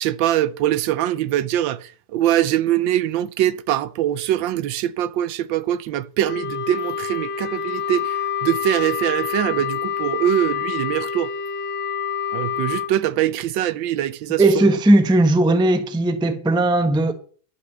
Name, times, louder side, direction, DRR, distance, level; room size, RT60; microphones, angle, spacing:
voice 1, 0.0-11.3 12.3-14.7, right 12 dB, 80° right, 1.4 m, -23 dB
Wind instrument woodwind instrument, 6.2-12.9, left 7 dB, 75° left, 1.7 m, -27 dB
voice 2, 14.4-17.1, right 2 dB, 5° right, 0.5 m, -17 dB
11.5 x 5.9 x 6.6 m
omnidirectional pair, 2.1 m